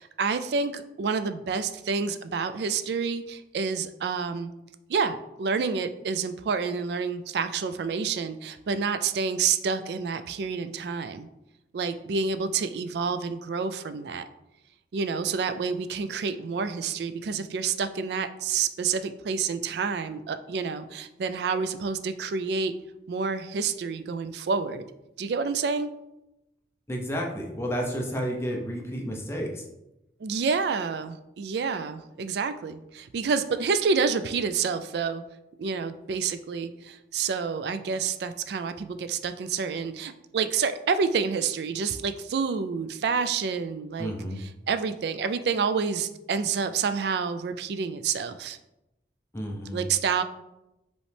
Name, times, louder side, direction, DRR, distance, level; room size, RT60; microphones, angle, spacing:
voice 1, 0.0-4.5 4.9-11.3 11.7-14.2 14.9-22.7 23.1-24.8 25.2-25.9 30.2-35.2 35.6-48.6 49.7-50.2, right 5 dB, 70° right, 11 dB, 0.3 m, -28 dB
voice 2, 26.9-29.6 44.0-44.4 49.3-49.8, equal, 15° left, 0 dB, 0.6 m, -31 dB
5.2 x 3.1 x 3.3 m, 0.91 s
head